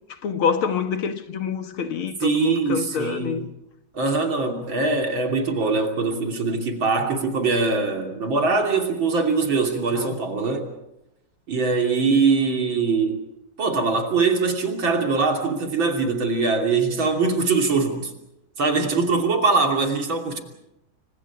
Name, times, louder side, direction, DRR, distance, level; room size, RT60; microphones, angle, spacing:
voice 1, 0.2-3.4 9.9-10.2, left 6 dB, 90° left, 2.3 m, -26 dB
voice 2, 2.2-3.5 3.9-10.7 11.5-13.2 13.6-18.1 18.6-20.4, right 4 dB, 70° right, 3.7 m, -22 dB
30.0 x 25.0 x 4.9 m
omnidirectional pair, 2.2 m